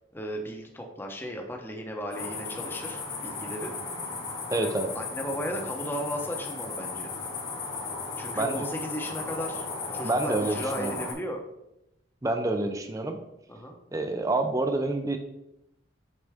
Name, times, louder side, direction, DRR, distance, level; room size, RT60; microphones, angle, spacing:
voice 1, 0.1-3.7 4.5-7.1 8.2-9.6 9.9-11.4 13.5-13.8, equal, 10° left, 2 dB, 0.8 m, -35 dB
sound 1, 2.1-11.1, left 4 dB, 85° left, 2.1 m, -36 dB
voice 2, 4.5-4.9 8.3-8.6 10.0-11.0 12.2-13.2 13.9-15.2, right 2 dB, 15° right, 6 dB, 0.4 m, -28 dB
7.8 x 3.9 x 3.5 m, 0.88 s
head